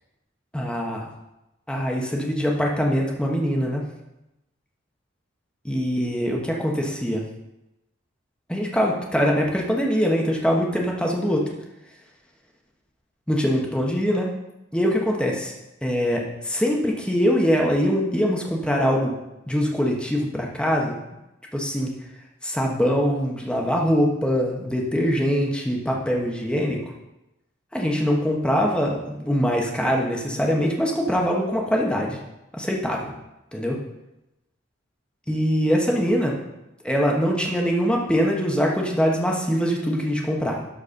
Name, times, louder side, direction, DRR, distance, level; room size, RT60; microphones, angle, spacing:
voice 1, 0.5-1.1 1.7-3.8 5.6-7.2 8.5-11.5 13.3-14.3 14.7-15.5 15.8-19.1 19.5-21.0 21.5-21.9 22.4-26.8 27.7-32.2 32.5-33.1 33.5-33.8 35.3-36.4 36.8-40.6, equal, 5° left, -1 dB, 1.4 m, -23 dB
12.5 x 4.7 x 5.9 m, 0.94 s
head